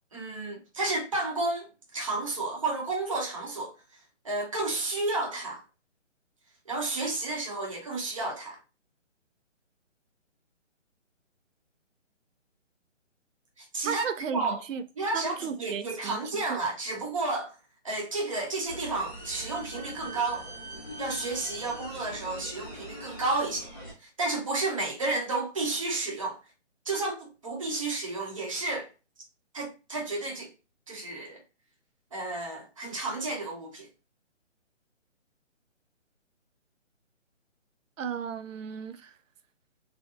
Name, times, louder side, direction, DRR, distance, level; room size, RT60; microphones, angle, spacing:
voice 1, 0.1-3.7 4.2-5.6 6.7-8.6 13.6-14.0 14.3-14.6 15.0-17.6 17.8-20.5 21.0-23.7 24.0-26.4 26.9-28.9 29.5-30.5 30.9-31.4 32.1-33.9, right 2 dB, 25° right, 0.7 m, -31 dB
voice 2, 13.8-14.8 15.1-16.6 38.0-39.2, right 7 dB, 85° right, 0.5 m, -34 dB
sound 1, 18.7-23.9, right 1 dB, 20° left, 0.7 m, -42 dB
3.2 x 2.7 x 2.5 m
hypercardioid pair, 170°, 37 cm